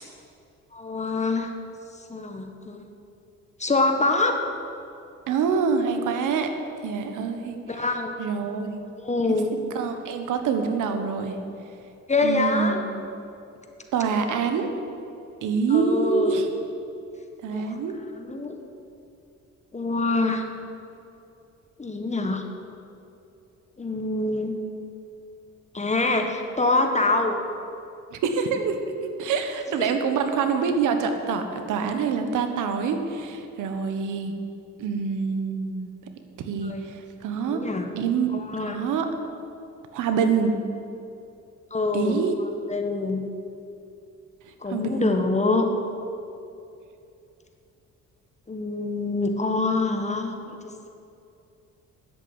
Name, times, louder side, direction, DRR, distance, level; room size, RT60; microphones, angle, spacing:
voice 1, 0.7-1.5 2.1-2.8 3.6-4.4 7.7-8.1 9.0-9.5 12.1-12.8 15.7-16.5 17.5-17.8 18.2-18.6 19.7-20.4 21.8-22.4 23.8-24.5 25.7-27.4 36.6-36.9 37.4-37.9 38.3-38.8 41.7-42.2 42.7-43.2 44.6-45.7 48.5-50.6, left 3 dB, 25° left, 4 dB, 1.5 m, -25 dB
voice 2, 5.3-6.5 6.8-7.6 8.2-8.8 9.3-9.4 9.7-11.4 12.2-13.0 13.9-14.7 15.4-16.5 17.4-17.9 28.1-34.3 34.8-35.9 36.4-37.7 38.0-38.3 38.6-39.1 39.9-40.5 41.9-42.3 44.7-45.2, right 5 dB, 85° right, 7 dB, 1.4 m, -26 dB
10.0 x 8.3 x 10.0 m, 2.7 s
cardioid pair, 90°, 30 cm